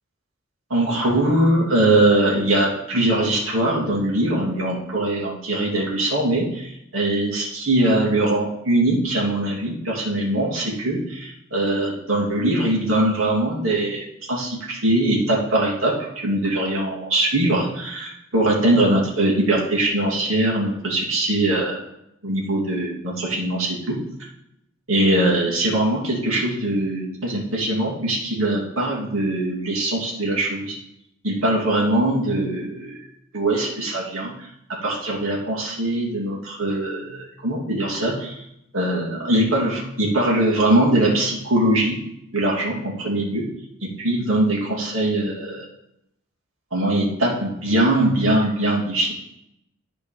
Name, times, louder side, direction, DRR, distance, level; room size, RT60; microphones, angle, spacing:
voice 1, 0.7-21.8 22.2-24.0 24.9-30.8 31.2-33.0 33.3-34.5 34.8-38.4 38.7-42.0 42.3-43.5 44.0-45.7 46.7-49.1, right 1 dB, 85° right, -3 dB, 2.6 m, -21 dB
11.5 x 4.5 x 5.3 m, 0.80 s
head